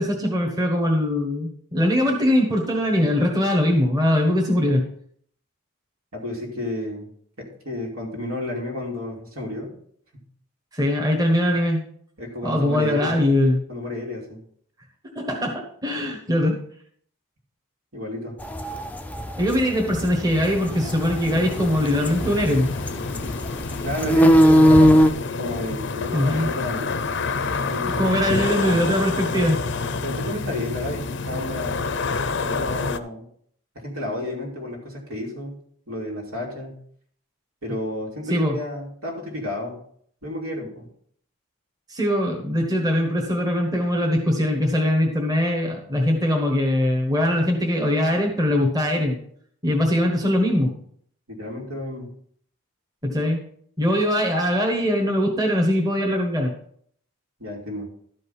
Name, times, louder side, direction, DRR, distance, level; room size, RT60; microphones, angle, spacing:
voice 1, 0.0-4.8 10.7-11.8 12.4-13.6 15.1-16.6 19.4-22.7 26.1-26.5 28.0-29.6 38.3-38.6 41.9-49.2 49.6-50.7 53.0-53.4 53.8-56.5, left 1 dB, 15° right, 1 dB, 1.4 m, -21 dB
voice 2, 6.1-7.1 7.4-9.7 10.1-10.2 12.2-13.2 13.7-14.4 17.9-18.4 23.8-27.0 27.6-28.3 30.0-31.8 32.5-33.3 33.7-35.6 35.9-36.8 37.6-39.8 40.2-40.9 51.3-52.1 57.4-57.9, left 1 dB, 75° right, -1 dB, 2.8 m, -31 dB
sound 1, 18.4-25.1, equal, 5° left, 0.4 m, -19 dB
sound 2, 20.3-33.0, left 4 dB, 50° left, 0.6 m, -28 dB
12.5 x 5.3 x 5.6 m, 0.63 s
head